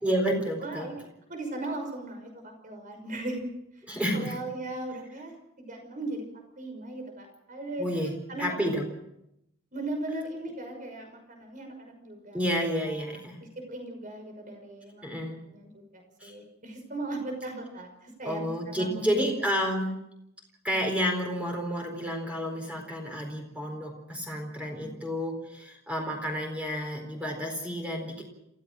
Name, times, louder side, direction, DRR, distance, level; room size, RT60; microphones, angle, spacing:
voice 1, 0.0-0.9 3.9-4.4 7.8-8.9 12.3-13.4 15.0-15.4 16.2-16.3 18.2-20.0 20.6-28.2, equal, 5° right, 1 dB, 4.2 m, -30 dB
voice 2, 0.6-3.5 4.1-6.3 6.6-7.9 8.3-8.7 9.7-13.0 13.4-15.0 15.5-19.3, right 2 dB, 40° right, 5 dB, 5.8 m, -37 dB
28.0 x 15.5 x 6.3 m, 0.83 s
head